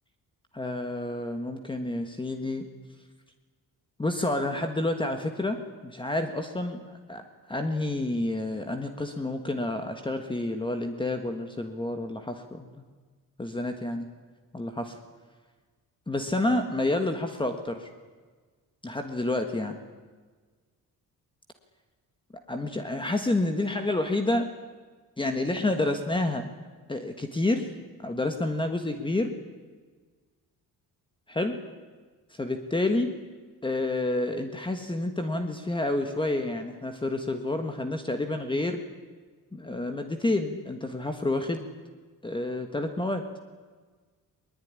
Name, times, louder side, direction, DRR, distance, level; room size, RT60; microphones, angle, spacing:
voice 1, 0.5-2.7 4.0-5.6 5.8-12.7 13.4-14.1 14.5-15.0 16.1-17.9 18.8-19.8 22.5-24.5 25.2-26.5 26.9-27.7 28.0-29.3 31.3-31.6 32.3-33.1 33.6-38.8 39.5-41.7 42.2-43.2, left 2 dB, 15° left, 6 dB, 1.5 m, -29 dB
21.5 x 20.5 x 9.7 m, 1.4 s
cardioid pair, 155°, 37 cm